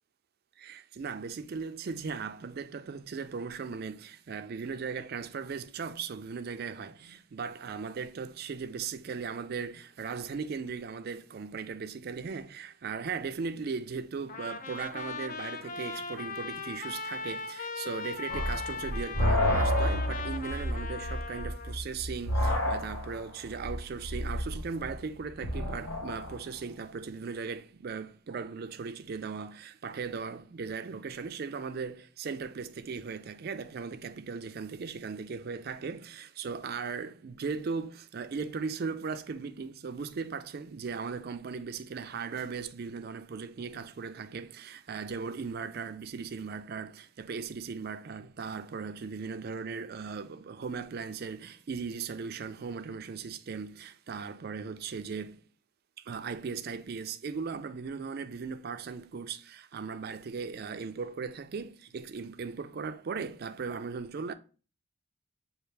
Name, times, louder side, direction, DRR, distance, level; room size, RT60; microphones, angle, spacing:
voice 1, 0.6-55.4 56.0-64.3, right 5 dB, 45° right, 0.3 m, -38 dB
Trumpet, 14.3-21.8, left 4 dB, 40° left, 0.4 m, -39 dB
sound 1, 18.3-26.4, left 1 dB, 65° left, 1.0 m, -30 dB
6.6 x 2.4 x 3.2 m
head